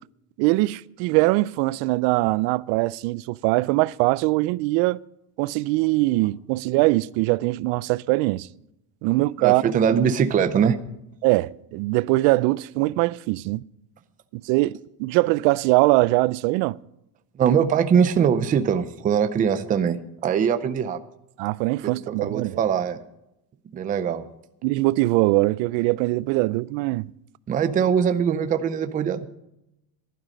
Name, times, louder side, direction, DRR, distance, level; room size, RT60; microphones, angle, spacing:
voice 1, 0.4-5.0 5.4-8.5 9.0-9.6 11.2-13.6 14.4-16.8 21.4-22.6 24.6-27.1, right 21 dB, 65° right, 0.5 m, -22 dB
voice 2, 9.4-10.8 17.4-21.0 21.8-23.0 23.7-24.2 27.5-29.3, right 7 dB, 20° right, 0.5 m, -22 dB
15.0 x 12.0 x 5.2 m
cardioid pair, 165°, 47 cm